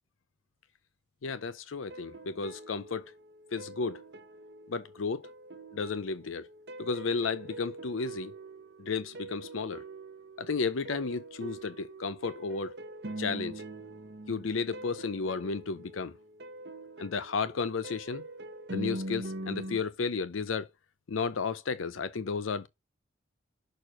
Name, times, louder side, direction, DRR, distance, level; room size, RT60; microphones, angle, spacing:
voice 1, 1.2-3.1 3.5-4.0 4.7-5.3 5.7-6.5 6.8-8.3 8.8-9.8 10.4-12.7 13.2-13.6 14.3-16.1 17.0-18.2 18.7-20.7 21.1-22.7, left 4 dB, 85° left, 0.6 m, -33 dB
sound 1, 1.9-19.8, right 1 dB, 55° right, 1.0 m, -43 dB
6.6 x 4.4 x 6.1 m
head